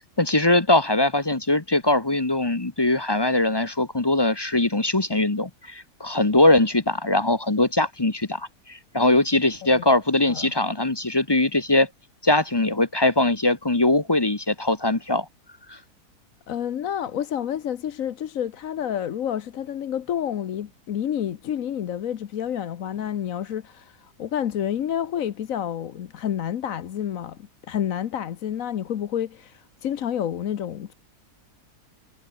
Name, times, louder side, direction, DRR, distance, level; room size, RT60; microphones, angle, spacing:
voice 1, 0.2-11.9 12.2-15.3 15.7-15.8, left 2 dB, 20° left, 1.0 m, -21 dB
voice 2, 16.5-30.9, left 9 dB, 60° left, 1.3 m, -29 dB
omnidirectional pair, 1.7 m